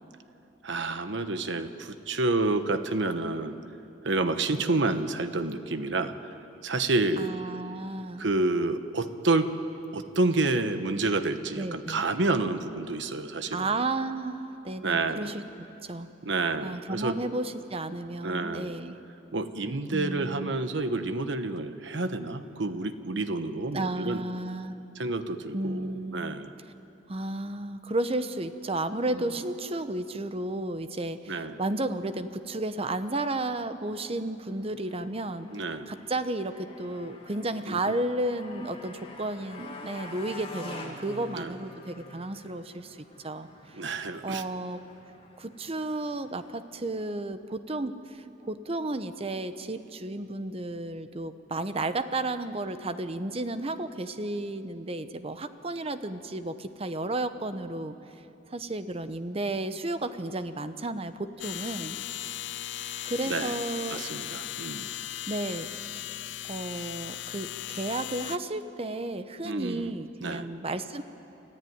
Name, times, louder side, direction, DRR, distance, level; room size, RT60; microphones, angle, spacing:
voice 1, 0.6-3.6 4.0-6.3 6.6-7.3 8.2-9.5 9.9-13.8 14.8-15.3 16.2-17.2 18.2-18.7 19.3-24.2 24.9-26.5 29.1-29.2 31.3-31.6 35.5-35.9 37.7-37.9 41.3-41.5 43.7-44.4 63.2-63.6 63.9-64.9 69.4-69.9 70.2-70.5, right 2 dB, 70° right, 10 dB, 1.1 m, -29 dB
voice 2, 7.2-8.3 11.5-12.0 13.5-15.4 15.8-16.1 16.6-19.0 19.9-20.5 23.7-24.8 25.5-26.3 27.1-35.5 35.9-43.8 44.2-44.8 45.4-57.9 58.5-62.2 63.0-64.0 65.3-65.7 66.4-71.0, right 2 dB, 30° right, 11 dB, 0.9 m, -33 dB
Motorcycle, 34.5-46.6, left 2 dB, 30° left, 2.2 m, -47 dB
sound 1, 61.4-68.4, left 12 dB, 65° left, 0.5 m, -37 dB
29.0 x 14.0 x 9.5 m, 2.9 s
head